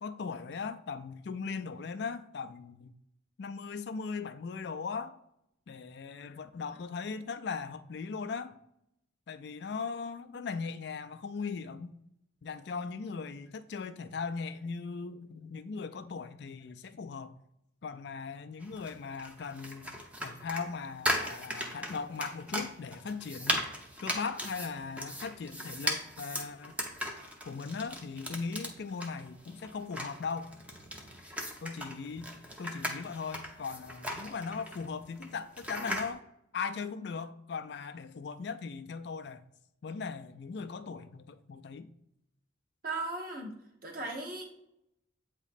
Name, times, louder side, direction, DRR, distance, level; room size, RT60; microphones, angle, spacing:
voice 1, 0.0-2.9 3.4-5.2 5.7-8.6 9.3-11.9 12.4-17.3 17.8-19.9 20.2-23.7 24.0-26.8 27.5-30.5 31.6-32.3 32.6-36.2 36.5-39.4 39.8-41.9, left 5 dB, 55° left, 0.4 m, -39 dB
sound 1, 18.6-36.1, equal, 5° right, 0.6 m, -38 dB
voice 2, 42.8-43.5 43.8-44.7, right 2 dB, 50° right, 1.1 m, -37 dB
8.2 x 3.0 x 4.1 m
head